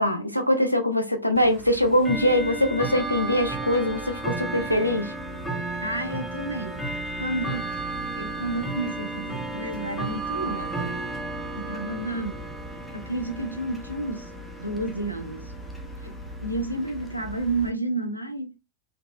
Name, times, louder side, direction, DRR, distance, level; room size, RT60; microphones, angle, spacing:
voice 1, 0.0-5.1, left 1 dB, 90° left, 0.4 m, -23 dB
Bell / Tick-tock, 1.4-17.7, right 2 dB, ahead, 0.4 m, -34 dB
voice 2, 5.8-6.9 7.2-7.9 8.2-11.0 11.5-12.5 12.9-14.3 14.6-15.5 16.0-16.1 16.4-18.6, right 2 dB, 90° right, 0.4 m, -31 dB
2.5 x 2.3 x 2.2 m
figure-of-eight pair, 90°, 0 cm